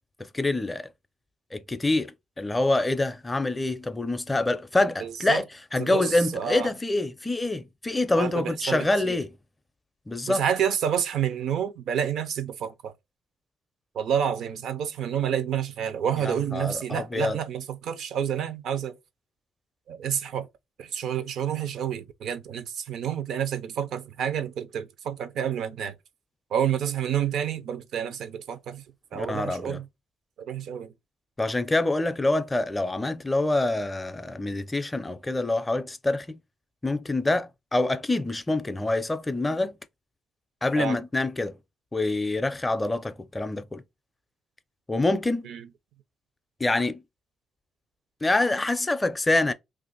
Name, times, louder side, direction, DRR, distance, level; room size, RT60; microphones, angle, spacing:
voice 1, 0.2-0.9 1.5-5.4 5.7-9.3 10.1-10.4 16.2-17.4 29.1-29.8 31.4-36.4 36.8-39.8 40.6-41.6 41.9-43.8 44.9-45.5 46.6-47.0 48.2-49.5, left 2 dB, 20° left, 0.4 m, -26 dB
voice 2, 5.0-5.4 5.8-6.7 8.2-9.2 10.3-12.9 13.9-19.0 19.9-20.5 20.8-26.0 26.5-28.8 29.1-29.9 30.4-30.9 40.8-41.1 45.4-45.7, right 9 dB, 75° right, 0.5 m, -29 dB
2.8 x 2.5 x 3.9 m
cardioid pair, 90°, 0 cm